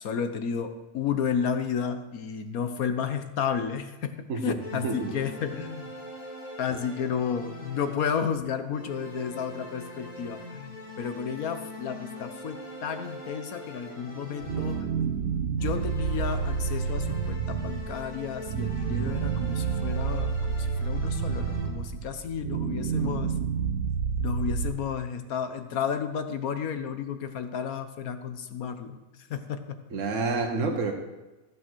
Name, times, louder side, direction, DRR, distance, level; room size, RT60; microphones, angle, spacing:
voice 1, 0.0-5.9 6.6-14.9 15.5-23.3 24.2-29.0 29.3-29.8, left 7 dB, 85° left, 8 dB, 1.5 m, -32 dB
voice 2, 4.3-5.1 29.9-30.9, right 3 dB, 60° right, 2 dB, 1.6 m, -29 dB
sound 1, 4.6-8.3 8.7-15.2 15.6-22.0, left 2 dB, 55° left, 2.2 m, -42 dB
sound 2, 14.4-24.7, right 6 dB, 90° right, 1.3 m, -29 dB
14.5 x 7.3 x 6.2 m, 1.1 s
omnidirectional pair, 1.5 m